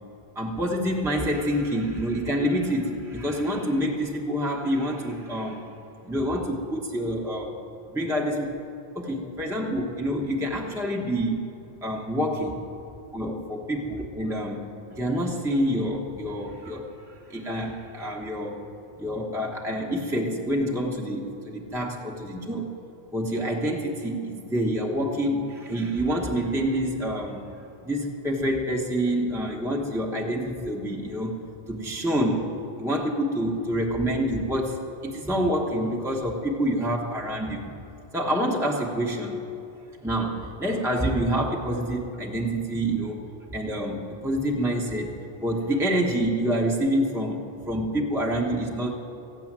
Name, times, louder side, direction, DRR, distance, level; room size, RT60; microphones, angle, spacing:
voice 1, 0.3-5.7 6.0-7.6 7.9-8.6 8.9-11.5 11.8-12.6 13.1-18.6 19.0-22.7 23.1-27.5 27.8-31.4 31.7-37.7 38.1-39.4 40.0-48.9, equal, 5° right, -1 dB, 1.1 m, -27 dB
14.5 x 9.6 x 7.4 m, 2.8 s
omnidirectional pair, 1.1 m